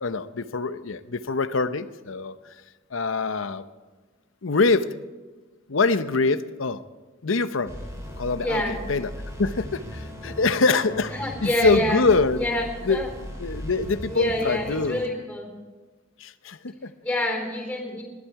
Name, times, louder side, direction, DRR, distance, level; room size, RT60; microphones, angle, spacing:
voice 1, 0.0-2.4 2.9-3.6 4.4-4.9 5.7-6.8 7.2-7.7 8.2-9.1 9.4-11.1 11.4-12.4 12.9-13.0 13.4-15.0 16.2-16.9, left 3 dB, 70° left, 12 dB, 0.8 m, -24 dB
sound 1, 7.6-15.1, equal, 15° right, 3.3 m, -37 dB
voice 2, 8.4-8.8 11.1-12.0 12.3-13.1 14.1-15.5 17.0-18.0, left 1 dB, 5° left, 1 dB, 4.1 m, -27 dB
20.5 x 12.0 x 4.8 m, 1.3 s
head